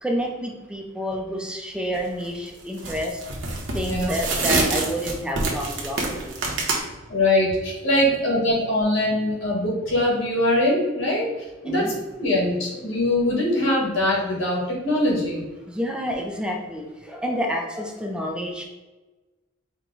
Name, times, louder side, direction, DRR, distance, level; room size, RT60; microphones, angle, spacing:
voice 1, 0.0-3.2 3.7-6.3 7.9-8.2 11.6-11.9 15.7-18.6, equal, 5° right, 1 dB, 0.4 m, -29 dB
sound 1, 1.9-2.2 2.8-6.8, right 3 dB, 70° right, 0.9 m, -26 dB
voice 2, 7.1-11.2 11.6-11.8 12.2-15.4, left 1 dB, 90° left, -3 dB, 1.4 m, -22 dB
4.6 x 2.1 x 3.8 m, 1.2 s
head